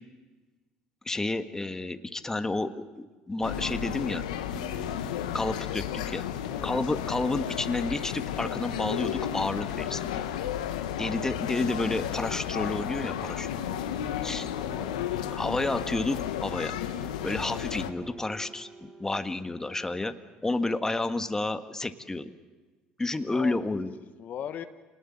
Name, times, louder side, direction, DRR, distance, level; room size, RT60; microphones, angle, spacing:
voice 1, 1.1-4.2 4.5-5.1 5.3-6.2 6.6-10.1 11.0-13.5 14.2-14.5 15.3-16.7 17.2-20.1 20.4-22.3 23.0-23.9, left 2 dB, 15° left, 8 dB, 1.6 m, -30 dB
sound 1, 3.4-17.9, left 10 dB, 85° left, 1.5 m, -33 dB
voice 2, 6.5-6.9 14.5-15.0 23.1-24.6, left 9 dB, 50° left, 9 dB, 1.3 m, -40 dB
sound 2, 12.8-14.0 14.2-20.1, right 2 dB, 20° right, 5.1 m, -51 dB
27.5 x 19.5 x 8.9 m, 1.3 s
hypercardioid pair, 70°, 4 cm